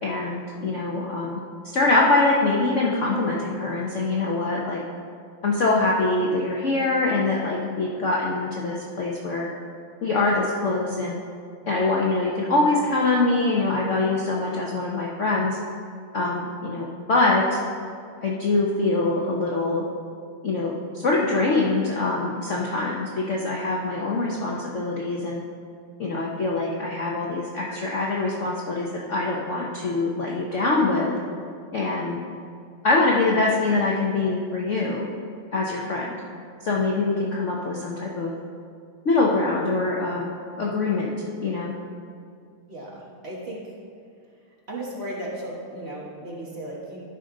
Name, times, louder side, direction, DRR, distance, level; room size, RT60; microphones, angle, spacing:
voice 1, 0.0-4.8 5.4-9.5 10.0-11.2 11.7-15.6 16.1-17.6 18.2-19.9 20.4-25.4 26.0-31.2 31.7-32.2 32.8-35.1 35.5-36.1 36.6-38.3 39.0-40.3 40.6-41.1 41.4-41.7, left 3 dB, 85° left, -3 dB, 0.6 m, -24 dB
voice 2, 42.7-43.7 44.7-47.0, right 1 dB, 35° right, -4 dB, 1.2 m, -35 dB
12.0 x 5.3 x 3.8 m, 2.3 s
omnidirectional pair, 2.4 m